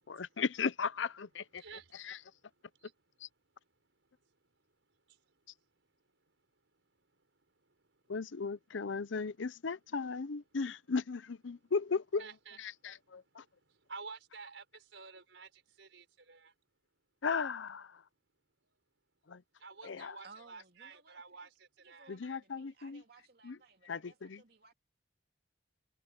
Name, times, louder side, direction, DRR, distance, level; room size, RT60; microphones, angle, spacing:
voice 1, 0.0-1.6 1.9-2.2 3.2-3.3 8.1-12.3 12.6-13.4 17.2-18.0 19.3-19.4 19.8-20.2 22.1-23.0 23.4-23.6 23.9-24.4, left 5 dB, 90° left, 0.7 m, -36 dB
voice 2, 1.6-2.9 4.0-4.5 5.1-5.3 5.6-5.7 6.3-6.4 7.0-7.3 7.6-8.0 12.2-16.5 19.6-22.1, right 4 dB, 85° right, 5.0 m, -53 dB
voice 3, 20.2-21.5 21.8-24.7, right 4 dB, 55° right, 2.9 m, -60 dB
head